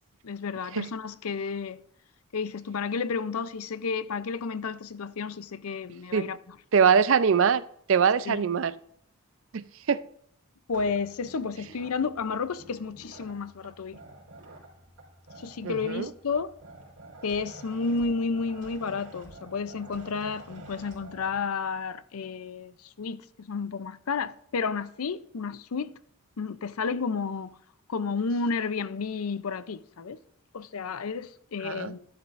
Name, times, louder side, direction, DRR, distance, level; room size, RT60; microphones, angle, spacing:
voice 1, 0.2-1.8 2.3-6.6 8.3-8.4 10.7-14.0 15.4-16.5 17.2-25.9 26.4-27.5 27.9-30.2 30.5-32.1, left 4 dB, 80° left, 0.5 m, -31 dB
voice 2, 6.7-7.6 7.9-8.7 9.5-10.0 15.6-16.1 31.6-31.9, right 6 dB, 60° right, 0.4 m, -23 dB
sound 1, 10.7-21.4, right 2 dB, 80° right, 3.8 m, -49 dB
13.0 x 11.5 x 2.5 m
head